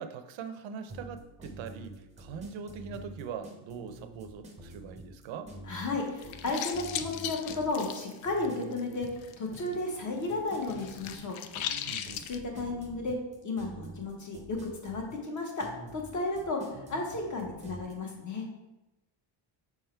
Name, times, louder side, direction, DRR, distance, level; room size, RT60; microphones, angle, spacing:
voice 1, 0.0-5.5 11.9-12.3, right 6 dB, 65° right, 9 dB, 0.6 m, -42 dB
sound 1, 0.9-17.9, right 1 dB, 15° right, 0.6 m, -47 dB
voice 2, 5.7-9.1 9.4-11.4 12.3-13.2 13.4-15.7 15.9-18.5, left 2 dB, 35° left, 1 dB, 1.1 m, -33 dB
sound 2, 6.1-9.8 10.0-12.4, left 10 dB, 70° left, 0.5 m, -38 dB
5.9 x 3.6 x 4.4 m, 1.0 s
cardioid pair, 170°, 50 cm